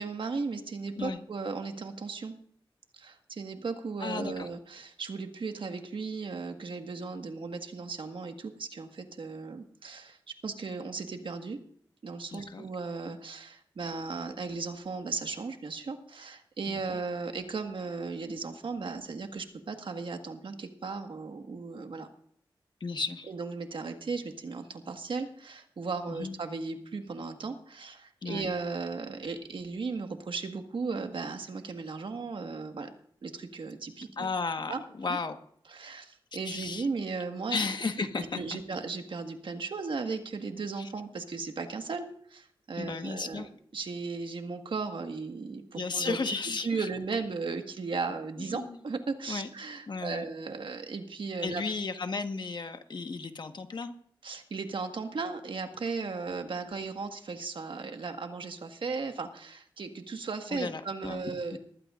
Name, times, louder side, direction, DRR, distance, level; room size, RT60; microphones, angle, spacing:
voice 1, 0.0-2.3 2.9-11.6 12.0-22.1 23.3-32.9 33.2-34.3 34.7-35.2 35.7-37.6 38.0-38.1 38.3-43.5 43.7-46.2 46.6-51.6 54.2-61.6, right 4 dB, 70° right, 6 dB, 1.6 m, -36 dB
voice 2, 4.0-4.5 12.3-12.6 16.7-17.0 22.8-23.3 26.1-26.3 28.2-28.5 34.2-35.4 36.4-36.9 37.5-38.4 40.8-40.9 42.8-43.5 45.7-46.9 48.4-48.8 49.3-49.5 49.9-50.2 51.4-53.9 60.5-61.2 61.5-61.6, left 4 dB, 55° left, 7 dB, 1.4 m, -34 dB
20.0 x 14.5 x 2.5 m, 0.62 s
cardioid pair, 70°, 9 cm